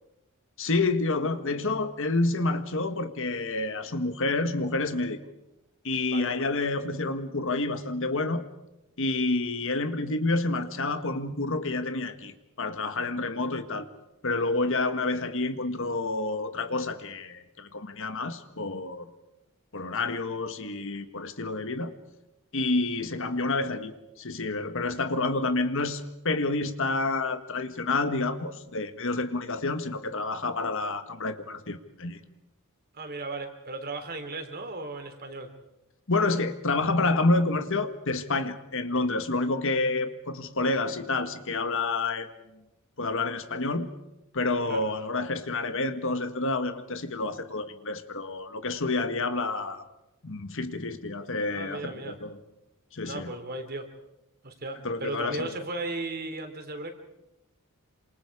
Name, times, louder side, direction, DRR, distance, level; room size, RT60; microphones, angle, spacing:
voice 1, 0.6-5.2 5.8-8.4 9.0-13.9 14.2-19.1 19.7-21.9 22.5-23.9 24.2-32.2 36.1-42.3 43.0-43.9 44.3-49.8 50.2-52.4 52.9-53.3 54.8-55.5, left 3 dB, 60° left, 1.5 m, -29 dB
voice 2, 32.9-35.5 44.7-44.9 51.5-52.2 53.0-53.9 54.4-56.9, right 2 dB, 45° right, 3.4 m, -36 dB
28.5 x 26.5 x 4.9 m
head